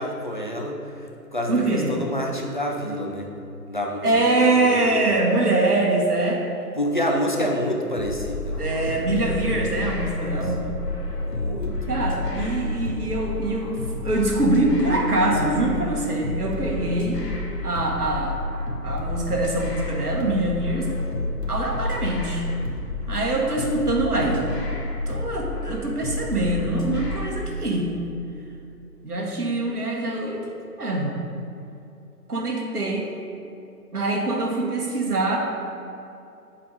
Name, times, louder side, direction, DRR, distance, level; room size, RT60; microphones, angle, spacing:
voice 1, 0.0-3.3 3.7-5.0 6.8-8.7 9.4-10.9 11.3-12.0, equal, 35° left, 0 dB, 0.5 m, -29 dB
voice 2, 1.5-2.0 4.0-6.4 8.6-10.6 11.6-17.2 17.6-18.4 18.8-20.9 21.5-22.5 23.1-24.4 25.1-27.9 29.0-30.5 30.8-31.1 32.3-33.1 33.9-35.4, right 2 dB, 70° right, 0 dB, 1.5 m, -24 dB
sound 1, 8.0-27.6, left 2 dB, 80° left, 1.4 m, -30 dB
7.5 x 3.9 x 4.9 m, 2.7 s
figure-of-eight pair, 145°, 48 cm